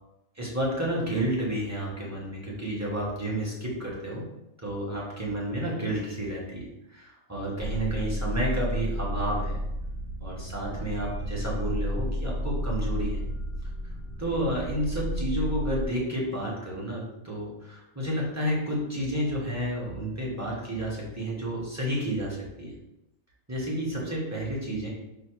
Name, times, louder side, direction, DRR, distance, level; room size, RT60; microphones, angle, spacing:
voice 1, 0.3-4.3 4.6-9.6 10.2-13.2 14.2-22.7 23.5-24.9, right 1 dB, 15° right, -5 dB, 0.8 m, -31 dB
sound 1, 7.6-15.9, equal, 80° right, 1.4 m, -32 dB
4.6 x 2.0 x 4.5 m, 0.90 s
omnidirectional pair, 1.5 m